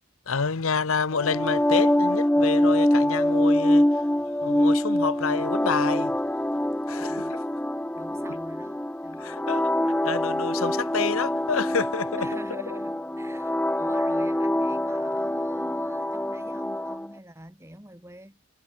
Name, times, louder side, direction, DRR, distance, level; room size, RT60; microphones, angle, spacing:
voice 1, 0.3-3.9 4.4-6.2 6.9-7.4 9.2-9.6 10.0-12.3, left 5 dB, 80° left, 0.9 m, -28 dB
sound 1, 1.1-17.1, left 1 dB, 5° left, 0.4 m, -25 dB
voice 2, 7.0-7.5 8.0-9.5 12.2-18.4, right 1 dB, 10° right, 3.4 m, -46 dB
head